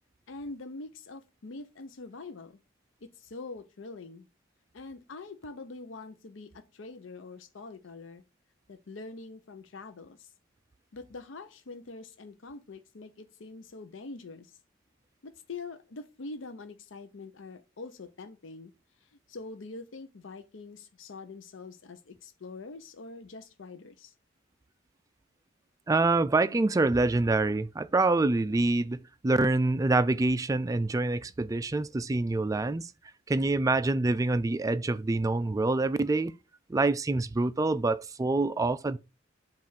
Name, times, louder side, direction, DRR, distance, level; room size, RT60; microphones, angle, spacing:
voice 1, 0.3-2.6 3.0-4.2 4.7-8.2 8.7-10.3 10.9-14.6 15.2-18.7 19.3-24.1, left 3 dB, 70° left, 0.6 m, -44 dB
voice 2, 25.9-32.9 33.3-36.3 36.7-39.0, right 2 dB, 15° right, 0.3 m, -26 dB
7.5 x 2.5 x 5.6 m
head